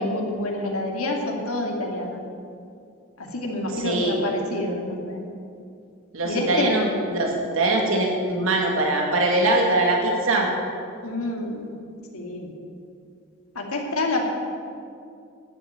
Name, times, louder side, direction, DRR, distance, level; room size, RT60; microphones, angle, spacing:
voice 1, 0.0-2.2 3.2-5.2 6.2-6.7 11.0-11.7 12.1-12.5 13.5-14.2, left 2 dB, 85° left, 0 dB, 2.4 m, -27 dB
voice 2, 3.8-4.2 6.1-10.5, right 2 dB, 70° right, 0 dB, 2.0 m, -22 dB
12.0 x 8.1 x 9.3 m, 2.4 s
head